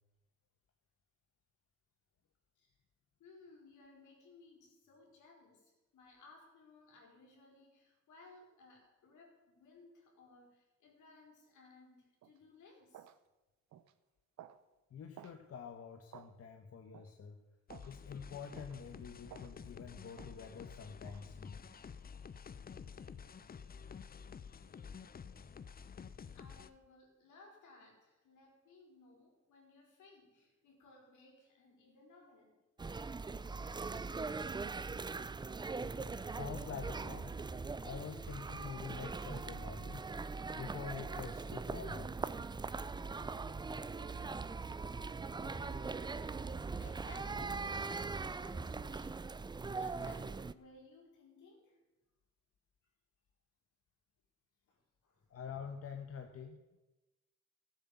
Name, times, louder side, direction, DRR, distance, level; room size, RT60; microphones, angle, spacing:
voice 1, 3.2-13.1 26.3-32.6 45.3-46.1 46.7-49.5 49.7-51.8 54.7-55.3, left 3 dB, 75° left, -1 dB, 4.5 m, -60 dB
sound 1, 12.2-12.4 12.9-13.2 13.7-13.9 14.4-14.6 15.2-15.4 16.1-16.3 16.9-17.1 17.7-17.9 18.6-18.8 19.3-19.6 20.2-20.4 21.1-21.3, right 11 dB, 65° right, 0.8 m, -55 dB
voice 2, 14.9-17.4 17.9-21.6 36.3-37.3 37.8-40.0 40.5-42.1 55.3-56.9, left 6 dB, 50° left, 6 dB, 1.1 m, -47 dB
sound 2, 17.7-26.7, left 6 dB, 30° left, 0.6 m, -50 dB
sound 3, 32.8-50.5, right 4 dB, 15° right, 0.4 m, -41 dB
14.5 x 8.1 x 7.1 m, 1.1 s
cardioid pair, 90°, 30 cm